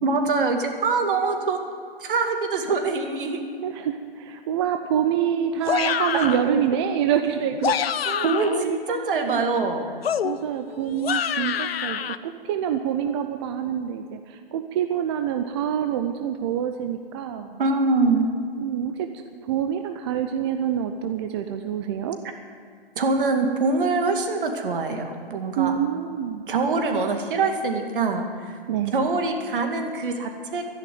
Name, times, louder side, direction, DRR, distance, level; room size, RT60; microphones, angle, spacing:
voice 1, 0.0-1.6 2.0-3.4 6.1-6.6 8.2-9.9 17.6-18.3 23.0-25.7 26.5-28.6 28.9-30.6, right 3 dB, 60° right, 5 dB, 2.2 m, -24 dB
voice 2, 3.6-9.4 10.2-17.6 18.6-19.1 19.4-22.2 25.6-26.4 28.7-29.0, right 9 dB, 25° right, 7 dB, 0.6 m, -26 dB
sound 1, 5.6-6.5 7.4-8.6 10.0-12.2, left 8 dB, 75° left, 0.7 m, -26 dB
12.0 x 10.5 x 9.5 m, 2.1 s
hypercardioid pair, 145°, 30 cm